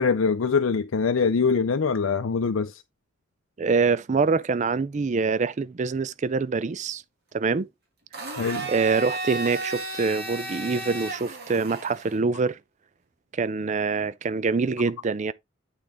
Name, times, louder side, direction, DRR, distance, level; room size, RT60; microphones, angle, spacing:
voice 1, 0.0-2.8 8.4-8.7, left 5 dB, 80° left, 0.6 m, -23 dB
voice 2, 3.6-7.0 7.3-7.7 8.7-12.6 13.3-15.3, right 4 dB, 35° right, 0.4 m, -25 dB
Domestic sounds home sounds, 8.1-12.2, right 2 dB, 50° right, 3.3 m, -34 dB
8.9 x 4.6 x 3.7 m
head